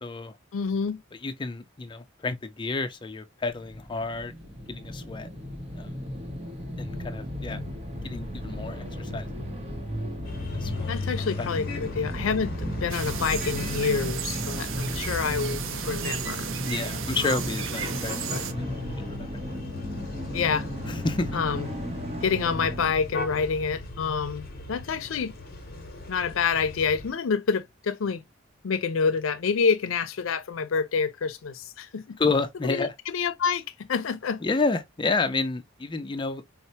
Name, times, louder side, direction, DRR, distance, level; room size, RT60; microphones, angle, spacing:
voice 1, 0.0-0.4 1.1-4.4 4.7-5.3 5.7-5.9 6.8-7.6 8.0-9.4 10.2-11.5 16.6-18.7 18.9-19.4 20.9-21.4 32.2-32.9 34.4-36.4, left 3 dB, 25° left, 0.4 m, -30 dB
voice 2, 0.5-1.0 10.9-12.5 12.8-16.5 17.2-17.4 20.3-20.7 21.3-21.7 22.2-25.3 26.1-28.2 28.6-32.2 32.7-32.9 33.1-33.6 33.9-34.4, left 5 dB, 85° left, 0.5 m, -27 dB
sound 1, 3.5-23.0, equal, 30° right, 0.8 m, -35 dB
sound 2, 10.2-27.1, left 3 dB, 50° left, 0.8 m, -37 dB
sound 3, 12.9-18.5, right 8 dB, 70° right, 0.5 m, -34 dB
4.2 x 2.0 x 2.7 m
head